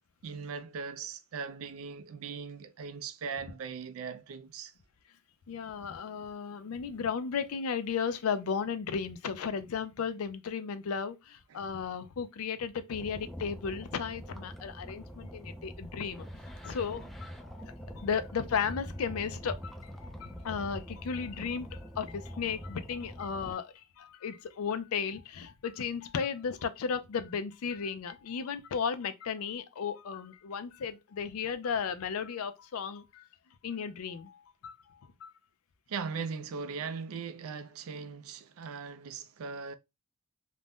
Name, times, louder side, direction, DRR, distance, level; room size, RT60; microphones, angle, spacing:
voice 1, 0.2-4.7 11.5-11.6 35.9-39.7, right 5 dB, 75° right, 0.4 m, -39 dB
voice 2, 5.5-16.3 16.6-17.3 17.6-33.2 33.6-34.4 34.6-34.8 35.2-35.3, left 6 dB, 85° left, 0.4 m, -35 dB
sound 1, 12.9-23.5, equal, ahead, 0.3 m, -44 dB
2.5 x 2.1 x 3.3 m
head